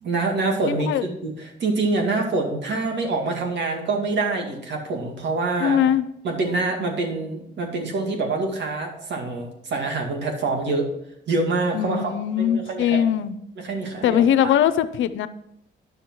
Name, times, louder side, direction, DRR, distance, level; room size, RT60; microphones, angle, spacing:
voice 1, 0.0-5.8 6.2-10.9 11.3-13.1 13.6-14.5, right 3 dB, 65° right, 2 dB, 2.2 m, -26 dB
voice 2, 0.7-1.0 5.6-6.0 11.7-13.4 14.0-15.3, left 9 dB, 75° left, 13 dB, 0.6 m, -21 dB
10.0 x 6.3 x 4.5 m, 0.76 s
cardioid pair, 90°, 20 cm